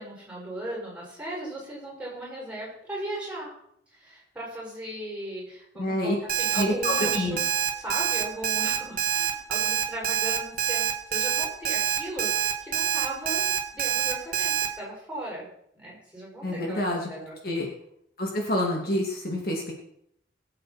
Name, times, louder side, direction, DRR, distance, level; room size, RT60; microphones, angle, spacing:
voice 1, 0.0-3.5 3.9-7.4 7.7-13.4 13.7-15.5 15.7-17.3, right 1 dB, 5° right, -6 dB, 6.3 m, -37 dB
voice 2, 5.8-6.2 6.5-7.4 16.4-17.1 17.4-17.7 18.2-19.7, left 1 dB, 55° left, -1 dB, 2.4 m, -27 dB
Alarm, 6.3-14.7, right 9 dB, 50° right, 1.6 m, -26 dB
21.5 x 7.8 x 4.3 m, 0.73 s
head